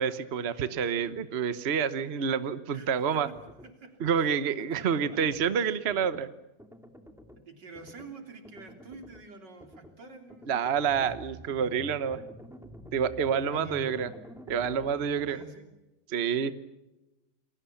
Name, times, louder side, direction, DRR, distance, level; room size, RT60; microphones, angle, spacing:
voice 1, 0.0-3.3 4.0-6.3 10.5-12.2 12.9-14.1 14.5-15.4 16.1-16.5, right 7 dB, 45° right, 12 dB, 1.2 m, -28 dB
voice 2, 2.7-3.4 3.6-4.3 4.6-4.7 4.9-5.2 5.6-5.8 7.4-10.5 13.4-14.1 15.3-15.7, right 2 dB, 85° right, 5 dB, 4.0 m, -47 dB
sound 1, 3.2-3.7 4.0-4.4 4.7-5.6 5.9-6.2 6.6-7.4 7.7-8.1 8.4-9.3 9.6-9.9 10.3-15.4, equal, ahead, 2.3 m, -49 dB
29.5 x 21.5 x 7.1 m, 0.98 s
omnidirectional pair, 1.8 m